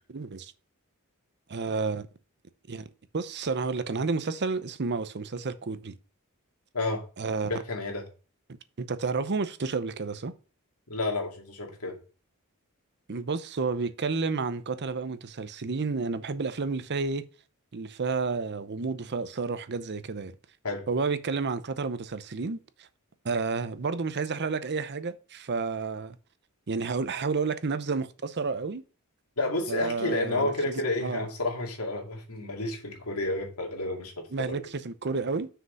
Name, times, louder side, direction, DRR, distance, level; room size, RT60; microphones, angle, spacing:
voice 1, 0.1-0.5 1.5-2.1 2.7-2.9 3.1-6.0 7.2-7.5 8.8-10.3 13.1-17.2 17.7-20.3 20.9-22.9 23.2-26.2 26.7-28.8 29.7-31.2 34.3-35.5, right 4 dB, 50° right, 0.7 m, -31 dB
voice 2, 6.7-7.0 7.5-8.0 10.9-12.0 20.6-20.8 29.4-34.6, left 2 dB, 80° left, 2.4 m, -30 dB
6.4 x 5.0 x 6.3 m
head